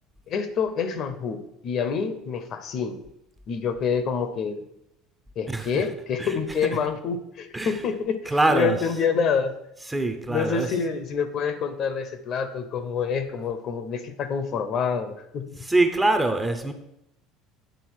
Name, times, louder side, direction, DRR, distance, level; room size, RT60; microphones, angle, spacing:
voice 1, 0.3-3.0 3.5-4.6 5.4-9.6 10.3-15.7, left 6 dB, 40° left, 11 dB, 0.7 m, -27 dB
voice 2, 5.5-5.9 6.2-6.4 7.5-7.8 8.3-8.8 9.9-10.7 15.6-16.7, right 2 dB, 10° right, 7 dB, 0.6 m, -24 dB
9.2 x 3.8 x 6.3 m, 0.81 s
cardioid pair, 150°, 0 cm